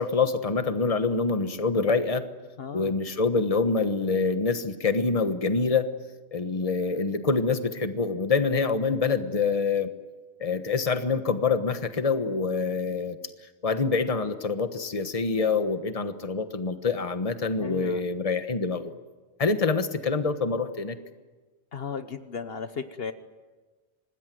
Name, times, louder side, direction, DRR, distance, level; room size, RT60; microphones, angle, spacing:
voice 1, 0.0-2.3 2.7-5.9 6.3-9.9 10.4-13.2 13.6-18.9 19.4-21.0, left 4 dB, 35° left, 9 dB, 1.3 m, -26 dB
voice 2, 2.6-2.9 17.6-18.0 21.7-23.1, left 6 dB, 65° left, 10 dB, 1.3 m, -35 dB
26.0 x 20.0 x 9.4 m, 1.3 s
omnidirectional pair, 1.1 m